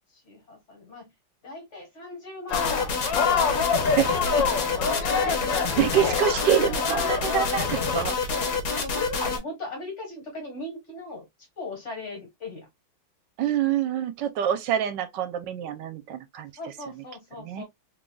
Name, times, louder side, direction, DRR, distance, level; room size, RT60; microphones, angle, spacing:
voice 1, 0.1-1.1 1.4-2.7 3.1-3.5 3.9-4.6 5.2-5.5 5.9-6.3 8.3-11.3 11.6-12.7 16.6-17.6, left 2 dB, 40° left, 1.9 m, -38 dB
sound 1, 2.5-8.1, left 6 dB, 80° left, 1.5 m, -27 dB
sound 2, 2.5-9.4, left 4 dB, 65° left, 1.5 m, -28 dB
voice 2, 4.0-4.4 5.8-8.2 13.4-16.5 17.4-17.6, right 10 dB, 80° right, 1.3 m, -26 dB
3.8 x 3.4 x 2.3 m
omnidirectional pair, 1.9 m